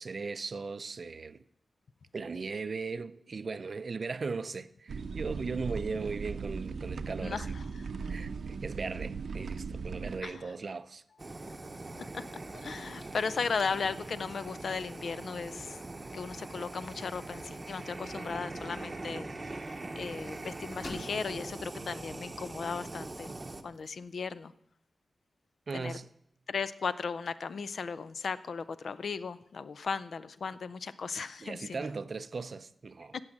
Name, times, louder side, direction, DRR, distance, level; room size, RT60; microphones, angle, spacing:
voice 1, 0.0-1.4 2.1-7.5 8.1-11.0 25.7-26.1 31.4-33.2, right 4 dB, 45° right, 0.5 m, -38 dB
sound 1, 4.9-10.2, right 5 dB, 85° right, 0.7 m, -38 dB
voice 2, 7.7-8.2 10.2-10.5 12.1-15.8 16.1-23.3 23.6-24.5 25.7-26.0 26.5-31.8 33.1-33.2, left 5 dB, 65° left, 0.5 m, -36 dB
Fire, 11.2-23.6, right 2 dB, 25° right, 0.8 m, -42 dB
sound 2, 12.0-24.3, left 1 dB, 40° left, 1.9 m, -55 dB
16.5 x 6.3 x 7.3 m
wide cardioid pair, 165°, 0 cm